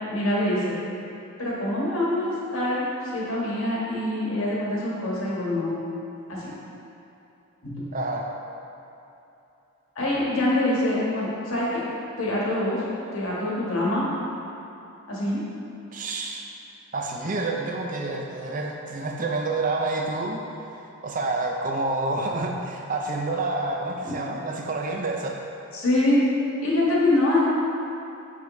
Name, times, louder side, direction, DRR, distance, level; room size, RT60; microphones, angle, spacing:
voice 1, 0.1-0.8 1.4-2.8 3.1-5.7 6.3-6.5 7.6-7.9 9.9-11.8 12.2-12.8 13.1-14.1 15.1-15.4 24.0-24.1 25.7-26.2 26.6-27.4, left 1 dB, 75° left, -6 dB, 1.5 m, -25 dB
voice 2, 7.9-8.3 15.9-16.5 16.9-20.4 21.0-25.4, right 2 dB, 35° right, 1 dB, 0.5 m, -28 dB
6.2 x 5.1 x 3.1 m, 2.8 s
head